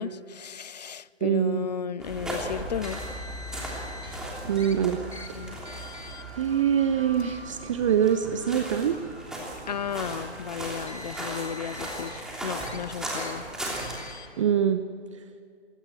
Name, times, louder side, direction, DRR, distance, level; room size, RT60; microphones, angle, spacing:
voice 1, 0.0-3.0 4.8-4.9 5.3-5.6 9.7-13.4, left 7 dB, 40° left, 0.5 m, -34 dB
voice 2, 1.2-1.7 4.4-5.0 6.4-9.1 14.4-14.8, right 9 dB, 30° right, 0.7 m, -24 dB
sound 1, 2.0-14.1, right 1 dB, ahead, 3.0 m, -37 dB
sound 2, 2.5-11.7, right 2 dB, 65° right, 3.0 m, -50 dB
Car, 2.8-4.2 4.6-4.7 5.1-5.3 5.7-6.2 7.1-7.2 8.2-8.3 10.6-12.2 12.6-12.8 13.1-13.3 13.7-14.3, left 2 dB, 80° left, 2.6 m, -44 dB
24.5 x 17.0 x 7.7 m
figure-of-eight pair, 135°, 33 cm